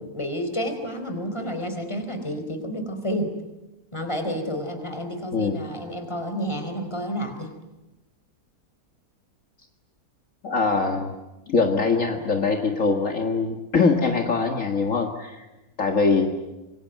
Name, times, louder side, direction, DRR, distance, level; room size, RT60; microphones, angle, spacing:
voice 1, 0.0-3.3 3.9-7.5, equal, 20° left, 6 dB, 4.5 m, -30 dB
voice 2, 10.4-11.1 11.5-15.5 15.8-16.3, left 4 dB, 55° left, 4 dB, 2.2 m, -22 dB
27.0 x 23.0 x 9.2 m, 1.1 s
omnidirectional pair, 1.6 m